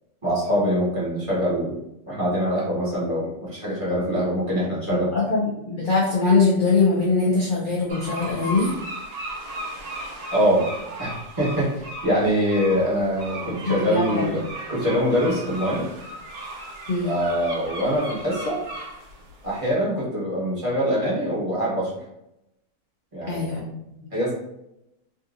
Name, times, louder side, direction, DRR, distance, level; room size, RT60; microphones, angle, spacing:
voice 1, 0.2-1.8 2.1-5.1 10.3-10.7 11.0-11.1 11.4-14.4 14.7-15.9 17.0-18.6 19.4-22.0 23.1-23.5 24.1-24.3, equal, 25° right, -8 dB, 1.0 m, -24 dB
voice 2, 4.9-8.7 13.4-14.4 16.9-17.2 23.2-24.0, left 3 dB, 70° left, -4 dB, 0.4 m, -22 dB
sound 1, 7.9-19.5, right 1 dB, 75° right, 1.5 m, -36 dB
3.5 x 2.7 x 2.4 m, 0.86 s
omnidirectional pair, 1.6 m